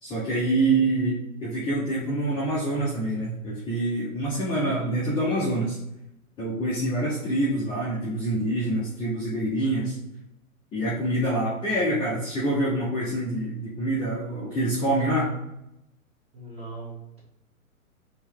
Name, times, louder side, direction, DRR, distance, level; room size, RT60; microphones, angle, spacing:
voice 1, 0.0-5.8 6.4-10.0 10.7-15.4, right 1 dB, 10° left, -7 dB, 0.7 m, -26 dB
voice 2, 16.3-17.2, right 3 dB, 15° right, -5 dB, 1.7 m, -40 dB
4.4 x 3.1 x 3.5 m, 0.85 s
figure-of-eight pair, 120°, 43 cm